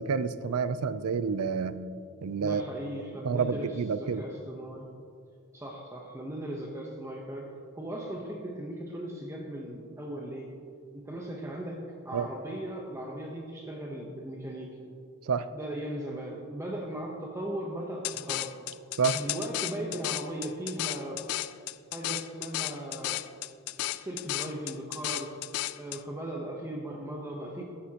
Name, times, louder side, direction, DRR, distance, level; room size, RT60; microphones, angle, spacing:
voice 1, 0.0-1.8 2.2-2.6 3.2-4.2 12.1-12.3 15.2-15.5 19.0-19.2, right 5 dB, 75° right, 14 dB, 0.5 m, -29 dB
voice 2, 2.4-4.9 5.5-10.5 10.9-14.8 15.5-18.5 19.1-21.2 21.9-23.2 23.9-25.4 25.8-27.6, right 1 dB, 15° right, -1 dB, 0.9 m, -38 dB
sound 1, 18.0-26.0, left 15 dB, 80° left, 0.3 m, -34 dB
14.5 x 11.5 x 2.9 m, 2.3 s
head